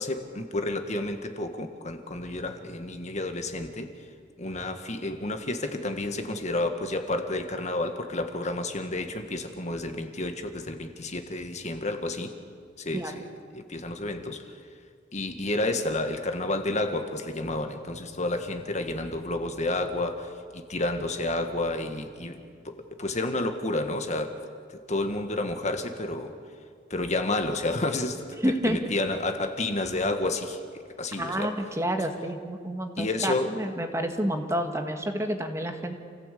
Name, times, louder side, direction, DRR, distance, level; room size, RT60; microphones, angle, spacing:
voice 1, 0.0-3.9 4.4-12.3 12.8-13.2 13.5-14.4 15.1-22.4 22.6-24.3 24.7-26.3 26.9-28.2 28.6-30.6 31.0-31.5 33.0-33.5, left 2 dB, 40° left, 6 dB, 1.7 m, -30 dB
voice 2, 28.4-28.8 31.2-36.0, equal, 15° right, 5 dB, 1.6 m, -29 dB
28.5 x 16.5 x 8.5 m, 2.2 s
head